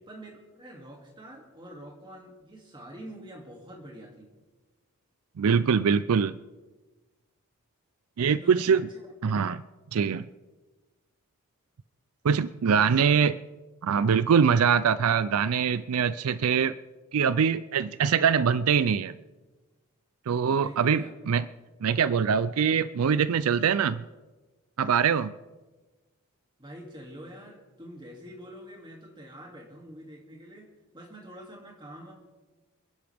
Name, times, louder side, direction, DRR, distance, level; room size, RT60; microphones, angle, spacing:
voice 1, 0.1-4.3 8.4-8.8 12.7-13.2 20.6-21.1 26.6-30.7 30.9-32.1, right 1 dB, 20° right, 0 dB, 2.5 m, -45 dB
voice 2, 5.4-6.3 8.2-8.9 9.2-9.6 9.9-10.3 12.2-13.3 13.8-16.8 17.1-19.1 20.3-21.4 21.8-24.1 24.8-25.3, right 6 dB, 80° right, 15 dB, 0.4 m, -23 dB
27.5 x 10.5 x 3.5 m, 1.2 s
head